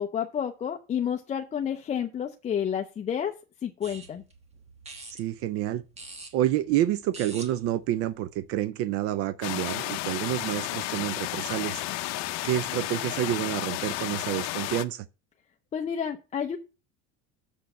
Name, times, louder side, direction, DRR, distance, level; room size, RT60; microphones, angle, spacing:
voice 1, 0.0-3.3 3.6-4.2 15.7-16.6, left 8 dB, 25° left, 0.6 m, -30 dB
sound 1, 3.8-8.7, right 3 dB, 20° right, 1.3 m, -47 dB
voice 2, 5.1-5.9 6.3-11.8 12.4-15.1, right 13 dB, 50° right, 0.5 m, -28 dB
sound 2, 9.4-14.8, left 16 dB, 60° left, 0.7 m, -32 dB
6.9 x 6.2 x 5.3 m
cardioid pair, 155°, 30 cm